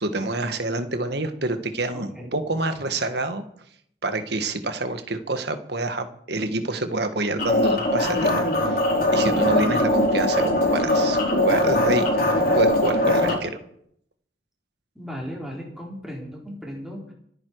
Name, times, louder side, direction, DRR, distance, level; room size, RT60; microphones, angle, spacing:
voice 1, 0.0-3.4 4.0-8.8 9.1-13.5, right 2 dB, 60° right, 8 dB, 1.7 m, -27 dB
voice 2, 1.9-2.3 14.9-17.1, equal, ahead, -3 dB, 4.6 m, -36 dB
sound 1, 7.4-13.3, left 1 dB, 50° left, 3.9 m, -21 dB
25.5 x 9.8 x 4.8 m, 0.69 s
head